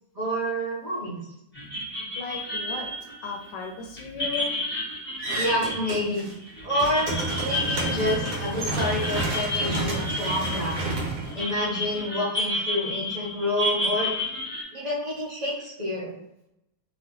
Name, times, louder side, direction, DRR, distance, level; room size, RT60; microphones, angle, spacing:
voice 1, 0.1-1.2 5.3-6.2 6.6-10.9 11.3-14.1 14.7-16.2, left 1 dB, 45° right, -6 dB, 0.5 m, -28 dB
sound 1, 1.5-14.6, left 1 dB, 10° left, 0.8 m, -31 dB
voice 2, 2.2-2.9 3.2-4.6, left 4 dB, 80° left, 1 dB, 1.2 m, -35 dB
sound 2, 5.2-6.3 6.6-12.0, right 2 dB, 70° right, 1.3 m, -30 dB
3.0 x 2.9 x 2.8 m, 0.84 s
omnidirectional pair, 1.9 m